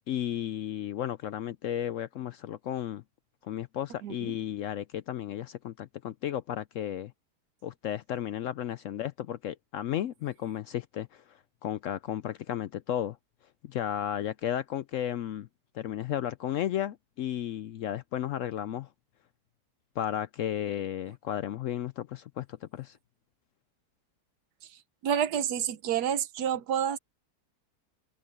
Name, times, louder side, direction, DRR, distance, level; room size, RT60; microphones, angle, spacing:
voice 1, 0.0-3.0 3.4-7.1 7.6-13.2 13.6-15.5 15.7-18.9 20.0-23.0, left 11 dB, 70° left, 0.8 m, -34 dB
voice 2, 4.0-4.3 25.0-27.0, right 9 dB, 80° right, 1.4 m, -29 dB
omnidirectional pair, 1.7 m